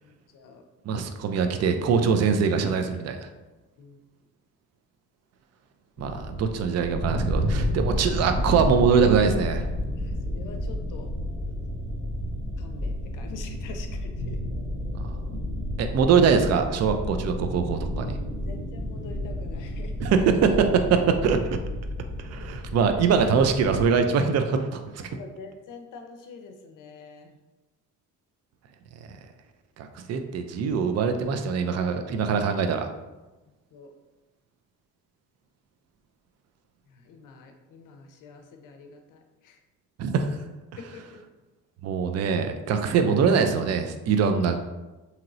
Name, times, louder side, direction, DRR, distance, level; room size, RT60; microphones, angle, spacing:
voice 1, 0.0-0.6 3.8-4.0 6.0-6.1 10.0-11.1 12.6-14.4 18.4-20.1 25.1-27.3 33.7-33.9 36.9-39.6 40.8-41.2, left 4 dB, 65° left, 5 dB, 0.6 m, -45 dB
voice 2, 0.9-3.3 6.0-9.6 14.9-15.2 15.8-18.1 20.0-21.4 22.2-25.0 29.8-32.9 40.0-40.3 41.8-44.6, right 6 dB, 50° right, 7 dB, 0.4 m, -23 dB
sound 1, 6.0-23.9, left 1 dB, 30° right, 1.1 m, -31 dB
2.9 x 2.9 x 2.5 m, 1.1 s
supercardioid pair, 75°, 35 cm